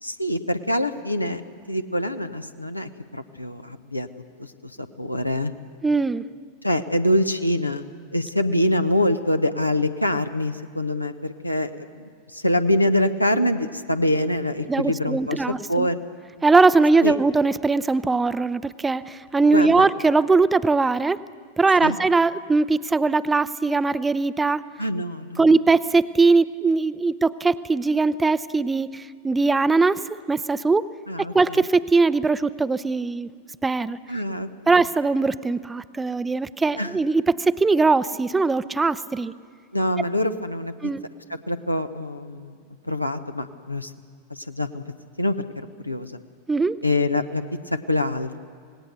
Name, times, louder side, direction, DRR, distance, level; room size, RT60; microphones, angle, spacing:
voice 1, 0.0-1.4 1.7-4.1 4.4-5.5 6.6-7.8 8.1-16.0 17.0-17.1 19.5-19.9 21.8-22.0 24.8-25.4 31.1-31.6 34.1-34.8 36.8-37.0 39.7-40.7 41.5-42.5 42.8-43.9 44.3-44.8 45.2-46.2 46.8-48.4, left 1 dB, 85° left, 9 dB, 0.9 m, -25 dB
voice 2, 5.8-6.2 14.7-15.9 16.4-21.2 21.6-24.6 25.4-30.9 31.3-33.3 33.6-34.0 34.7-39.3 40.8-41.0 46.5-46.8, right 3 dB, 10° right, 16 dB, 0.5 m, -20 dB
26.5 x 19.0 x 6.8 m, 2.2 s
figure-of-eight pair, 90°, 0 cm